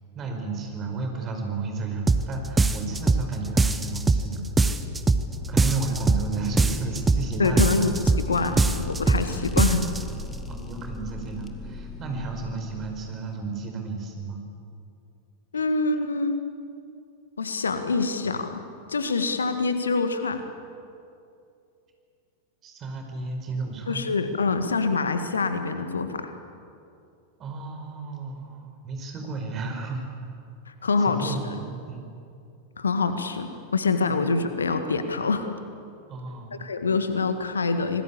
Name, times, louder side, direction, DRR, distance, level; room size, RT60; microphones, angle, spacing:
voice 1, 0.1-4.8 5.5-8.2 8.5-8.7 9.1-9.4 10.5-14.4 22.6-24.0 27.4-30.1 31.0-32.1 36.1-36.5, right 3 dB, 30° right, 4 dB, 5.2 m, -33 dB
sound 1, 2.1-2.3 2.6-3.3 3.6-4.3 4.6-5.3 5.6-6.3 6.6-7.3 7.6-8.3 8.6-9.3 9.6-10.0, right 3 dB, 10° right, 1.1 m, -21 dB
sound 2, 5.1-13.6, left 1 dB, 20° left, 2.1 m, -39 dB
voice 2, 7.4-7.9 8.3-9.8 15.5-16.4 17.4-18.6 18.9-20.4 23.9-26.3 30.7-31.6 32.8-35.5 36.6-38.0, left 4 dB, 75° left, 9 dB, 1.7 m, -25 dB
26.5 x 20.5 x 8.5 m, 2.5 s
figure-of-eight pair, 90°, 0 cm